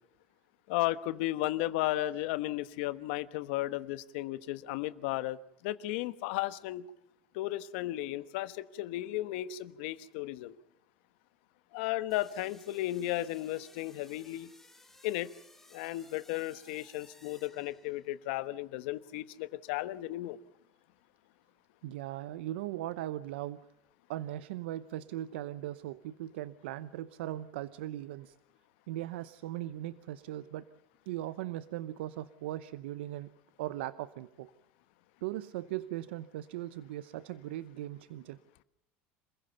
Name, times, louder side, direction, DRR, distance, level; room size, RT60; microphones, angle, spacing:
voice 1, 0.7-6.8 7.3-10.5 11.7-14.5 15.0-15.3 15.7-20.4, left 16 dB, 75° left, 14 dB, 1.2 m, -34 dB
sound 1, 12.1-18.3, left 2 dB, 5° left, 2.8 m, -59 dB
voice 2, 21.8-23.6 24.1-28.3 28.9-30.6 31.1-33.3 33.6-34.5 35.2-38.4, right 14 dB, 85° right, 15 dB, 0.8 m, -39 dB
27.5 x 15.5 x 6.9 m, 0.82 s
supercardioid pair, 105°, 6 cm